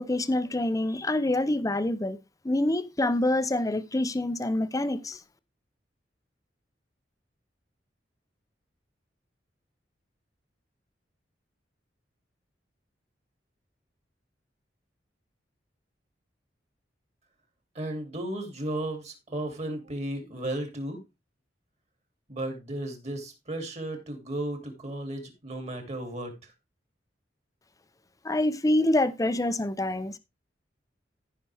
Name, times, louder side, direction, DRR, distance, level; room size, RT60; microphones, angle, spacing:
voice 1, 0.0-2.2 2.4-5.2 28.2-30.2, left 1 dB, 20° left, 0.7 m, -26 dB
voice 2, 17.7-21.0 22.3-26.3, right 1 dB, 40° right, 2.8 m, -34 dB
14.5 x 5.8 x 3.4 m
head